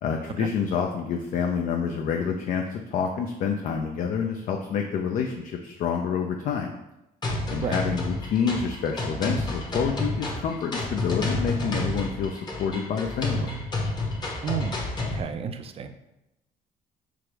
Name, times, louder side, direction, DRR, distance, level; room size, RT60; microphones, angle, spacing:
voice 1, 0.0-6.8 7.5-13.5, left 6 dB, 50° left, 3 dB, 0.4 m, -28 dB
sound 1, 7.2-15.2, left 2 dB, 25° left, 0.9 m, -30 dB
voice 2, 14.4-15.9, right 7 dB, 35° right, 8 dB, 0.4 m, -32 dB
4.7 x 2.0 x 4.6 m, 0.92 s
cardioid pair, 110°, 17 cm